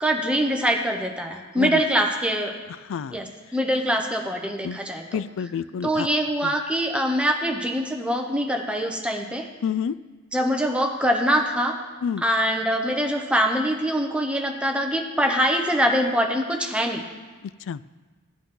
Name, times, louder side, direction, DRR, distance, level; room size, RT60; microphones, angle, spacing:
voice 1, 0.0-2.5 3.1-5.2 5.8-9.5 10.3-11.7 12.2-17.0, equal, 5° right, 2 dB, 0.9 m, -24 dB
voice 2, 2.8-3.2 4.6-4.8 5.1-6.1 6.4-6.5 9.6-10.0 12.0-12.2 17.4-17.8, left 7 dB, 60° left, 17 dB, 0.3 m, -29 dB
15.5 x 9.2 x 3.8 m, 1.4 s
head